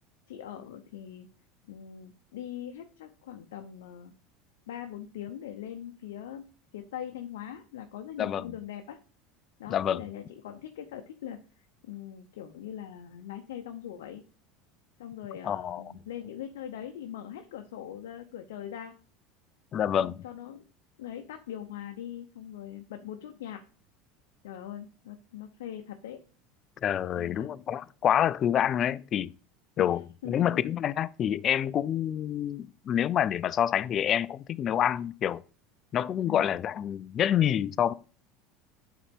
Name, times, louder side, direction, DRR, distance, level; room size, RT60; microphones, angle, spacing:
voice 1, 0.3-1.3 1.7-4.1 4.7-9.0 9.6-11.4 11.9-14.2 15.0-19.0 19.9-20.7 21.0-23.6 24.4-26.2 27.2-27.6 29.8-30.6 36.3-36.5, left 10 dB, 90° left, 0.7 m, -41 dB
voice 2, 9.7-10.0 15.4-15.8 19.7-20.2 26.8-29.3 29.8-30.0 30.3-35.4 35.9-37.9, left 10 dB, 40° left, 0.3 m, -27 dB
8.6 x 4.1 x 3.5 m
supercardioid pair, 120°, 0 cm